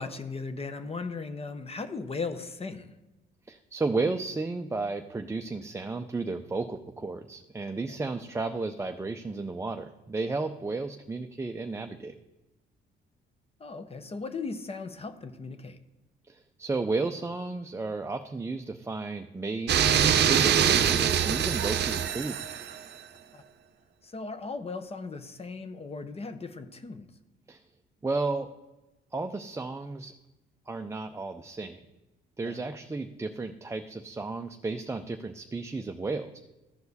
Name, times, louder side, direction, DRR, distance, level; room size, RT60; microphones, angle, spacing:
voice 1, 0.0-2.9 7.9-8.0 13.6-15.8 23.3-23.4 24.0-27.1 32.4-32.6, left 4 dB, 30° left, 10 dB, 0.7 m, -37 dB
voice 2, 3.5-12.1 16.3-22.5 27.5-27.6 28.0-28.5 29.1-30.1 30.7-31.8 32.4-36.4, right 3 dB, 15° right, 5 dB, 0.5 m, -33 dB
sound 1, 19.7-22.8, right 8 dB, 60° right, 0.7 m, -24 dB
14.0 x 4.7 x 4.1 m, 1.0 s
cardioid pair, 90°, 20 cm